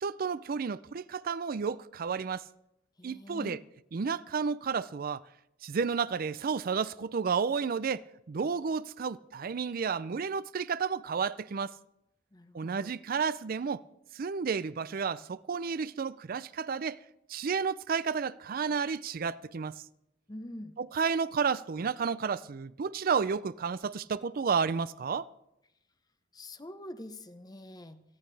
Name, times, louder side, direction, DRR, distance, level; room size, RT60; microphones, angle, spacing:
voice 1, 0.0-2.4 3.0-3.6 3.9-5.2 5.6-11.7 12.5-13.8 14.1-17.0 17.3-19.8 20.8-25.3, right 5 dB, 50° right, 0.4 m, -31 dB
voice 2, 3.0-3.6 12.3-13.0 20.3-20.7 26.3-28.0, left 1 dB, 20° left, 0.8 m, -45 dB
28.5 x 10.5 x 3.3 m
head